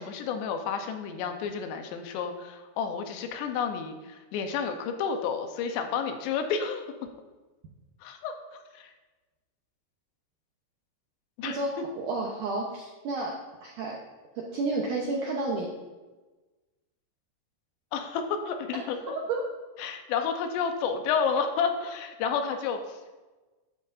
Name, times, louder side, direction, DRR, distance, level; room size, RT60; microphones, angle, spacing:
voice 1, 0.0-6.8 8.0-8.9 11.4-11.6 17.9-19.1 19.8-23.1, left 6 dB, 85° left, 6 dB, 2.9 m, -31 dB
voice 2, 11.4-13.4 13.6-14.0 14.5-15.7 19.1-19.4, right 2 dB, 75° right, -1 dB, 1.8 m, -31 dB
12.5 x 9.5 x 2.6 m, 1.2 s
omnidirectional pair, 4.9 m